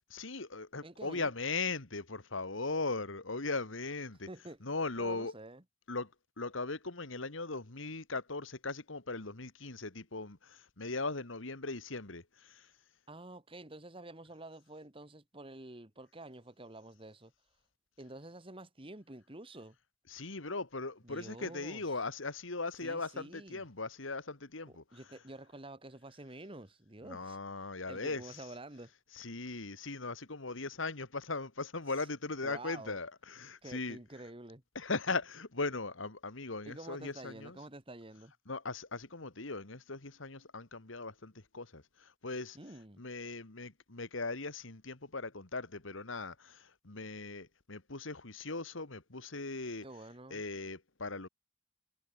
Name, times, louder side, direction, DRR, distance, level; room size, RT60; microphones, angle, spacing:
voice 1, 0.1-4.3 4.6-5.3 5.9-6.1 6.4-10.4 10.8-12.2 20.1-24.8 27.0-28.5 29.1-34.0 34.8-37.6 38.5-41.8 42.2-42.6 43.0-46.6 46.9-49.9 50.3-51.3, left 3 dB, 75° left, 2.1 m, -39 dB
voice 2, 0.8-1.3 4.3-4.6 5.0-5.6 13.1-17.3 18.0-19.8 21.0-21.8 22.8-23.6 24.7-27.4 27.9-28.9 32.4-33.0 33.6-34.6 36.7-38.3 42.5-43.0 49.8-50.4, right 2 dB, 25° right, 2.0 m, -49 dB
head